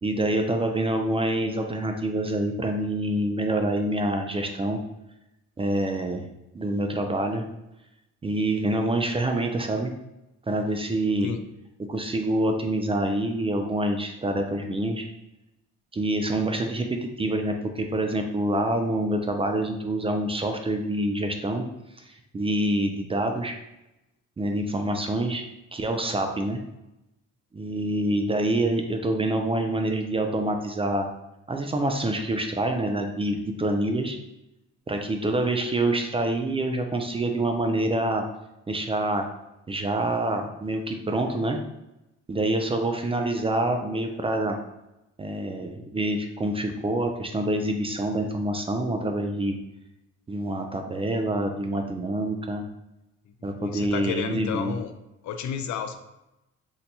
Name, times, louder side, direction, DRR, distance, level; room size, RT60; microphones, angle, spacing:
voice 1, 0.0-4.8 5.6-6.3 6.5-7.4 8.2-9.9 10.5-11.3 11.9-15.1 15.9-21.6 22.0-22.1 22.3-23.6 24.4-25.5 25.7-26.6 27.5-31.1 31.5-34.2 34.9-38.2 38.7-39.3 39.7-41.6 42.3-44.6 45.2-49.6 50.3-52.6 53.4-54.7, right 1 dB, 20° right, 4 dB, 0.3 m, -26 dB
voice 2, 53.4-54.9 55.2-56.0, left 7 dB, 70° left, 8 dB, 0.5 m, -31 dB
2.8 x 2.2 x 4.0 m, 0.92 s
cardioid pair, 90°, 30 cm